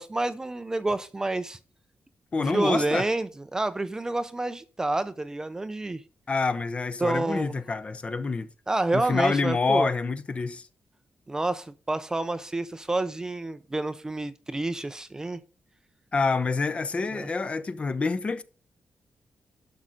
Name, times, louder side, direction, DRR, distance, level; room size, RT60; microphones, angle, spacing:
voice 1, 0.0-1.6 2.4-6.0 7.0-7.5 8.7-9.9 11.3-15.4 17.1-17.3, right 2 dB, 15° right, 0.5 m, -29 dB
voice 2, 2.3-3.1 6.3-8.5 8.9-10.7 16.1-18.4, left 4 dB, 30° left, 0.6 m, -27 dB
12.0 x 6.2 x 3.9 m
wide cardioid pair, 170°, 4 cm